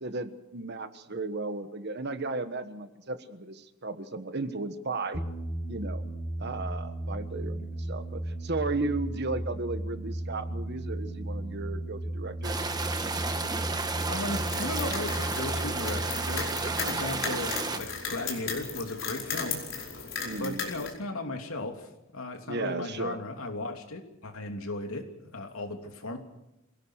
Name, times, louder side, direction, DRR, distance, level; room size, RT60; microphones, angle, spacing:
voice 1, 0.0-5.3 5.7-6.0 6.4-12.6 20.2-20.7 22.5-23.2, right 3 dB, 50° right, 10 dB, 1.4 m, -35 dB
sound 1, 5.1-18.4, right 1 dB, 25° left, 3.5 m, -36 dB
sound 2, 12.4-17.8, right 3 dB, 20° right, 1.4 m, -32 dB
voice 2, 14.1-19.6 20.4-26.2, left 2 dB, 75° left, 4 dB, 3.1 m, -36 dB
sound 3, 14.2-20.9, left 5 dB, 60° left, 5.2 m, -36 dB
26.0 x 17.5 x 6.5 m, 0.89 s
head